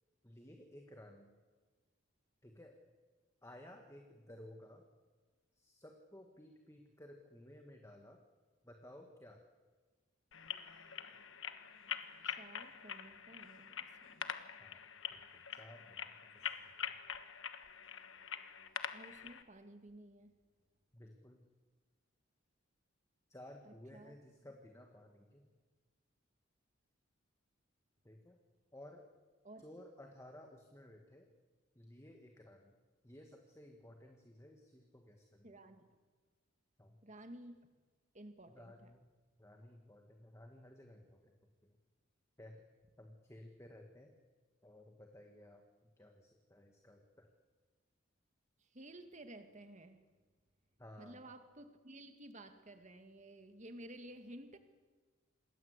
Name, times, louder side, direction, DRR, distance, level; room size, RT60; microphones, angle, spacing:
voice 1, 0.2-1.3 2.4-2.8 3.4-4.8 5.5-8.2 8.6-9.4 14.6-16.9 20.9-21.4 23.3-25.5 28.0-28.4 28.7-29.1 29.6-31.3 31.7-32.8 33.0-35.6 36.8-37.0 38.5-39.0 39.4-41.4 41.6-41.8 42.4-42.6 43.0-44.1 44.6-47.3 50.8-51.3, left 1 dB, 15° left, 3 dB, 1.8 m, -56 dB
sound 1, 10.3-19.4, left 8 dB, 70° left, 1.4 m, -45 dB
voice 2, 12.2-14.2 18.9-20.3 23.7-24.1 29.4-29.6 35.4-35.9 37.0-37.7 38.1-38.9 48.6-50.1 51.0-54.6, right 1 dB, 35° right, 7 dB, 2.1 m, -54 dB
27.5 x 21.0 x 8.2 m, 1.4 s
head